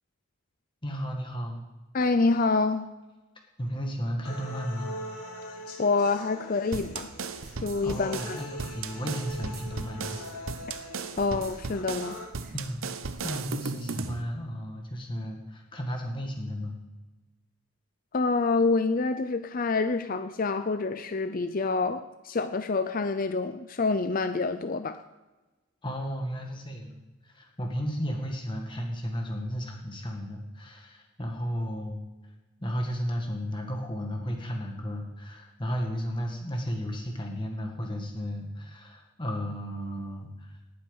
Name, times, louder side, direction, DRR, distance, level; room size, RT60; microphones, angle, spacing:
voice 1, 0.8-1.6 3.6-5.0 7.8-10.2 12.5-12.8 13.2-16.8 25.8-32.0 32.6-40.5, equal, 20° left, 2 dB, 1.9 m, -34 dB
voice 2, 1.9-2.9 5.8-7.1 7.6-8.4 11.2-12.2 18.1-25.0, left 3 dB, 40° left, 10 dB, 0.5 m, -27 dB
sound 1, 4.2-12.2, left 1 dB, 80° left, 2.9 m, -43 dB
sound 2, 6.7-14.2, right 4 dB, 65° right, 0.8 m, -36 dB
19.0 x 8.6 x 5.5 m, 1.1 s
head